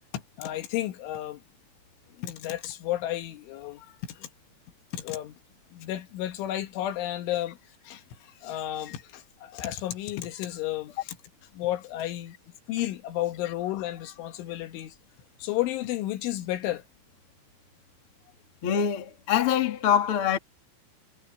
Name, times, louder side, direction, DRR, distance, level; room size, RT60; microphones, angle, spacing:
voice 1, 0.1-1.4 2.1-4.3 4.9-5.4 5.7-7.6 7.9-11.2 11.5-12.4 12.7-15.0 15.4-16.8, left 14 dB, 70° left, 3.6 m, -32 dB
voice 2, 18.6-20.4, left 9 dB, 50° left, 1.6 m, -24 dB
omnidirectional pair, 6.0 m